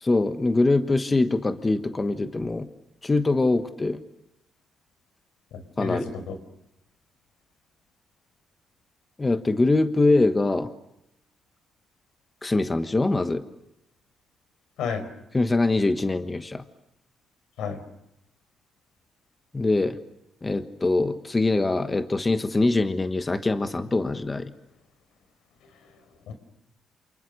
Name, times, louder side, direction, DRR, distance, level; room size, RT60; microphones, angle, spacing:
voice 1, 0.0-2.7 3.0-4.0 5.8-6.0 9.2-10.7 12.4-13.4 15.3-16.6 19.5-20.0 20.4-24.5, left 2 dB, 15° left, 9 dB, 1.3 m, -23 dB
voice 2, 5.5-6.4 14.8-15.0 17.6-17.8 26.3-26.4, left 5 dB, 85° left, 10 dB, 4.7 m, -31 dB
29.5 x 28.0 x 6.6 m, 0.83 s
cardioid pair, 140°, 0 cm